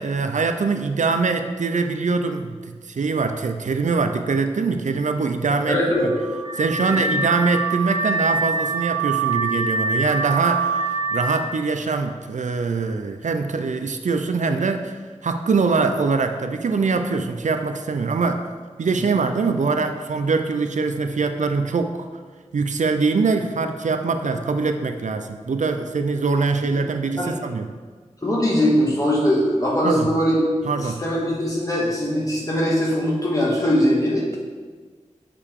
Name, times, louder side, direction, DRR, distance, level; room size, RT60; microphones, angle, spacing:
voice 1, 0.0-6.1 6.6-18.4 18.8-22.1 22.5-27.7 29.8-30.1 30.7-31.0, right 4 dB, 75° right, 7 dB, 0.4 m, -23 dB
voice 2, 5.7-6.1 19.0-19.1 27.2-27.3 28.2-30.4 30.6-34.4, equal, 30° left, -5 dB, 1.7 m, -21 dB
Car / Alarm, 6.0-11.5, right 4 dB, 35° right, 0.8 m, -24 dB
6.6 x 5.0 x 3.6 m, 1.5 s
wide cardioid pair, 80°, 13 cm